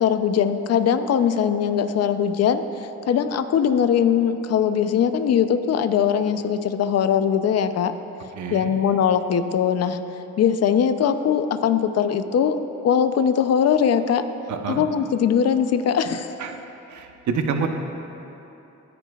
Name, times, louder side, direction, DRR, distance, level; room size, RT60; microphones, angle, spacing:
voice 1, 0.0-7.9 8.5-10.0 10.4-12.6 12.8-14.2 14.7-16.3, left 8 dB, 55° left, 9 dB, 0.7 m, -21 dB
voice 2, 8.3-8.7 14.5-14.9 16.4-16.6 16.9-17.7, right 6 dB, 70° right, 5 dB, 1.0 m, -27 dB
22.5 x 10.0 x 2.4 m, 3.0 s
cardioid pair, 90°, 30 cm